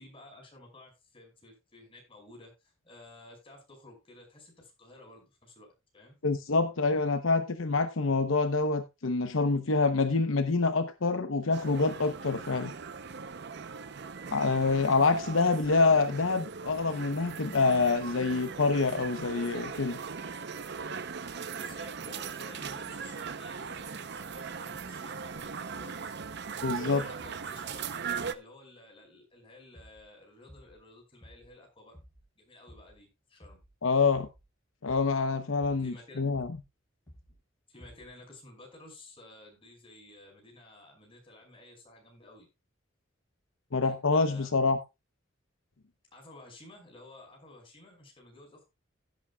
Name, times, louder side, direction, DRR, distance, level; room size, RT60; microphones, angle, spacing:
voice 1, 0.0-5.7 5.9-6.2 21.5-26.2 26.8-31.9 32.4-33.6 35.8-36.2 37.7-42.5 43.8-44.5 46.1-48.6, left 2 dB, 25° left, 5.4 m, -53 dB
voice 2, 6.2-12.7 14.3-20.0 26.6-27.0 33.8-34.3 34.8-36.5 43.7-44.8, left 4 dB, 75° left, 0.9 m, -26 dB
sound 1, 11.5-28.3, right 5 dB, 55° right, 0.7 m, -39 dB
sound 2, 29.7-30.1 30.5-30.9 31.2-31.6 31.9-32.3 32.7-33.0 33.4-33.8 34.1-34.5 34.9-35.2 35.6-36.0 36.3-36.7 37.1-37.4 37.8-38.2, equal, 10° left, 4.9 m, -55 dB
16.5 x 8.6 x 2.3 m
head